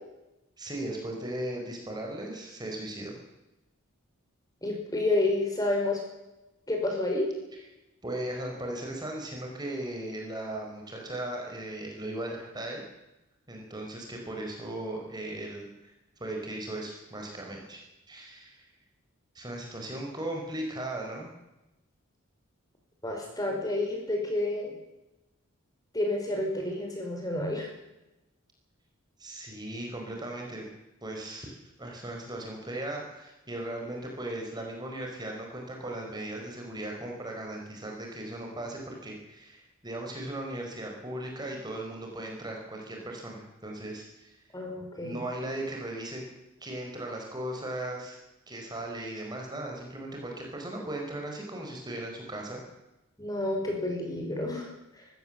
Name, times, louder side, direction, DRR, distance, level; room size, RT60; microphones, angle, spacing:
voice 1, 0.6-3.2 8.0-12.8 13.5-15.9 16.2-17.8 18.1-18.6 19.3-21.3 29.2-30.7 31.0-31.5 31.8-44.3 45.0-46.2 46.6-48.2 48.5-52.6, right 1 dB, 20° right, 1 dB, 4.4 m, -37 dB
voice 2, 4.6-6.0 6.7-7.3 23.0-24.8 25.9-27.7 44.5-45.2 53.2-54.7 55.0-55.1, left 2 dB, 15° left, 1 dB, 5.3 m, -29 dB
23.5 x 15.5 x 7.3 m, 0.96 s
head